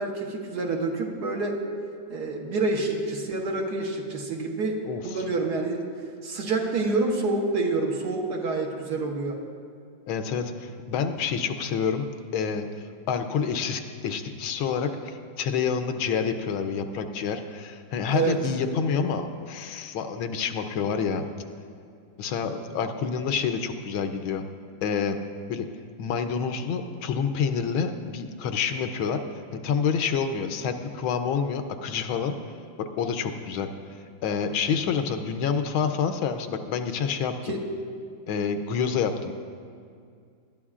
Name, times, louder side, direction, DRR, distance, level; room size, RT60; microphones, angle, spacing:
voice 1, 0.0-1.5 2.1-5.8 6.2-9.4 18.1-18.4 37.5-37.6, right 3 dB, 60° right, 0 dB, 1.6 m, -27 dB
voice 2, 10.1-12.1 12.3-12.7 13.1-21.2 22.2-24.4 24.8-25.2 25.5-25.7 26.0-29.2 29.5-32.3 32.8-33.7 34.2-37.6 38.3-39.3, left 6 dB, 85° left, 8 dB, 1.5 m, -28 dB
19.5 x 12.0 x 2.5 m, 2.3 s
omnidirectional pair, 2.1 m